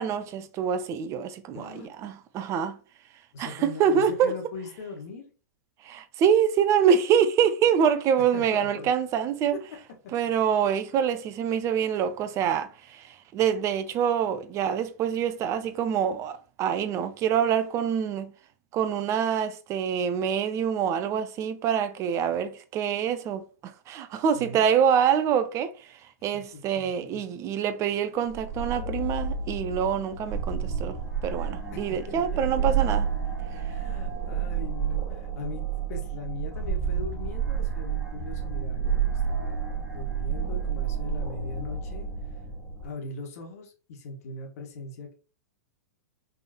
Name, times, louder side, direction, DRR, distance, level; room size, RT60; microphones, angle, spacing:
voice 1, 0.0-2.8 3.4-4.3 5.8-9.5 10.1-18.3 18.7-31.0 31.2-33.1, right 8 dB, 30° right, 0.7 m, -26 dB
voice 2, 1.5-1.9 3.3-5.3 8.3-8.9 9.5-9.6 10.0-10.1 24.3-24.7 26.3-26.9 31.7-32.9 33.6-35.6 35.9-42.4 42.8-45.1, left 3 dB, 60° left, 1.5 m, -40 dB
sound 1, 28.3-42.8, right 6 dB, 10° right, 1.7 m, -30 dB
5.2 x 3.5 x 2.9 m
hypercardioid pair, 110°, 9 cm